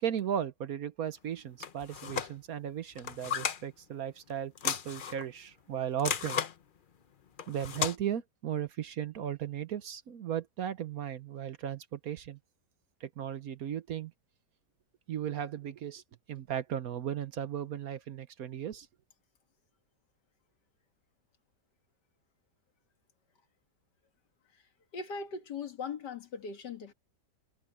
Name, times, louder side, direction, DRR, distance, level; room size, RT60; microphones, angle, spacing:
voice 1, 0.0-6.4 7.5-12.4 13.0-14.1 15.1-16.0 16.3-18.9, right 9 dB, 60° right, 1.2 m, -36 dB
sound 1, 1.6-2.3 2.9-3.6 4.6-5.3 6.0-6.5 7.4-8.0, left 7 dB, 50° left, 0.6 m, -34 dB
voice 2, 24.9-26.9, left 5 dB, 75° left, 2.4 m, -39 dB
omnidirectional pair, 1.9 m